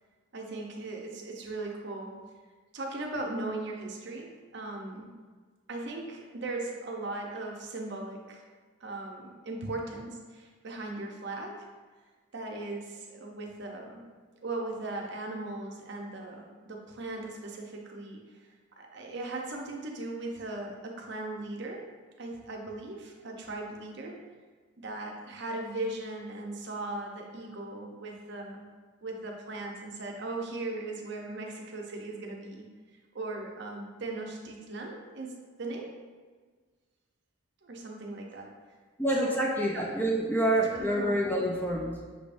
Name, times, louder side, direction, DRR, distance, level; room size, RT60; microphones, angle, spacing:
voice 1, 0.3-2.2 2.7-5.1 5.7-8.4 8.8-11.6 12.3-14.0 14.3-18.2 18.8-21.8 22.2-24.2 24.8-28.7 29.0-32.7 33.1-35.9 37.6-38.5 39.2-39.4 39.7-39.9 40.7-41.2, right 2 dB, 55° right, 0 dB, 0.6 m, -38 dB
voice 2, 39.0-42.2, right 1 dB, 10° left, -2 dB, 0.4 m, -28 dB
6.0 x 3.4 x 2.5 m, 1.5 s
head